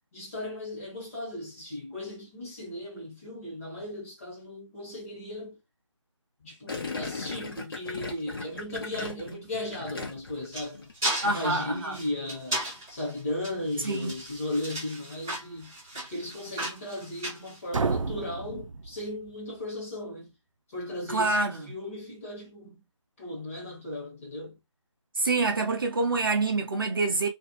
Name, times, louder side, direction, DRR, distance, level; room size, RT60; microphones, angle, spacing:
voice 1, 0.1-5.6 6.4-15.7 16.1-20.3 20.7-22.8 23.2-24.6, left 1 dB, 25° left, 1.3 m, -36 dB
Gurgling, 6.7-10.5 10.7-11.1, left 3 dB, 45° left, 1.0 m, -37 dB
sound 1, 9.9-18.2, right 1 dB, 5° right, 0.4 m, -36 dB
voice 2, 11.2-12.0 13.8-14.1 21.1-21.7 25.1-27.3, right 3 dB, 45° right, 0.6 m, -26 dB
sound 2, 17.7-19.6, right 4 dB, 90° right, 0.4 m, -31 dB
2.5 x 2.3 x 2.8 m
figure-of-eight pair, 160°, 16 cm